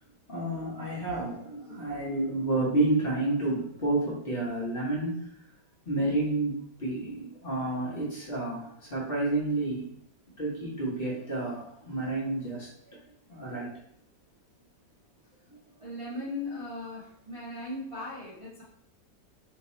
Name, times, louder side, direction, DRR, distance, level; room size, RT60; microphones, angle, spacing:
voice 1, 0.3-5.3 5.8-9.9 10.4-13.0 13.3-13.7 15.5-15.6, right 2 dB, 35° left, -6 dB, 1.1 m, -30 dB
voice 2, 15.8-18.6, left 2 dB, 35° right, -8 dB, 0.5 m, -38 dB
3.5 x 2.9 x 4.1 m, 0.72 s
omnidirectional pair, 1.9 m